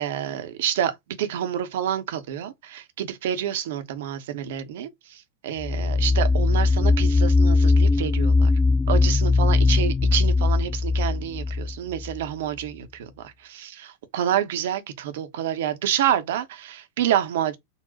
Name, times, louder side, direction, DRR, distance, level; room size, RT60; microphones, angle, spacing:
voice 1, 0.0-8.5 8.9-17.6, right 10 dB, 55° right, 0.6 m, -28 dB
sound 1, 5.6-12.2, left 3 dB, 15° left, 0.4 m, -20 dB
3.9 x 2.1 x 2.7 m
figure-of-eight pair, 90°, 0 cm